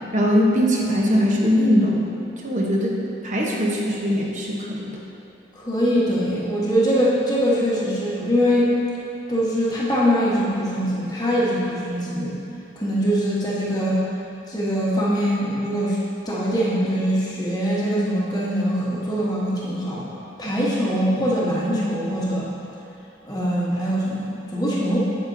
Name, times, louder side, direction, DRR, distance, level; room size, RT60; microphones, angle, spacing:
voice 1, 0.1-2.0 2.4-3.0 3.2-5.0, equal, 40° right, -2 dB, 0.9 m, -20 dB
voice 2, 5.5-8.8 9.3-12.4 12.8-14.0 14.5-16.0 16.3-20.0 20.4-22.5 23.2-25.1, equal, 20° left, -6 dB, 1.1 m, -22 dB
8.1 x 7.8 x 2.7 m, 2.7 s
head